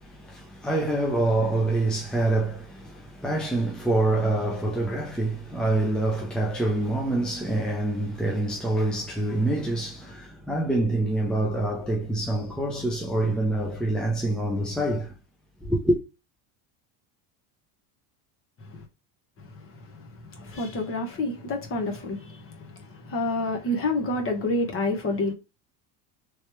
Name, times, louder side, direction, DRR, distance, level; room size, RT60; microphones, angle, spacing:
voice 1, 0.0-15.1 15.6-16.0, right 2 dB, ahead, 0.5 m, -26 dB
voice 2, 20.2-25.3, left 2 dB, 30° left, 1.2 m, -28 dB
3.3 x 3.0 x 3.1 m
supercardioid pair, 120°, 45 cm